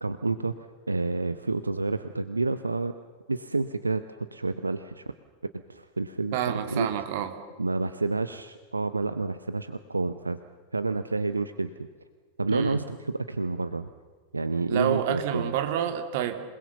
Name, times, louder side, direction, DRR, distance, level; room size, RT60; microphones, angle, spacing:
voice 1, 0.0-2.9 3.3-5.0 5.5-6.9 7.6-10.4 10.7-11.7 12.4-13.9 14.3-15.5, right 3 dB, 80° right, 12 dB, 0.8 m, -29 dB
voice 2, 6.3-7.3 12.5-12.8 14.7-16.4, right 10 dB, 50° right, 8 dB, 2.4 m, -28 dB
27.5 x 20.5 x 7.1 m, 1.5 s
figure-of-eight pair, 90°, 0 cm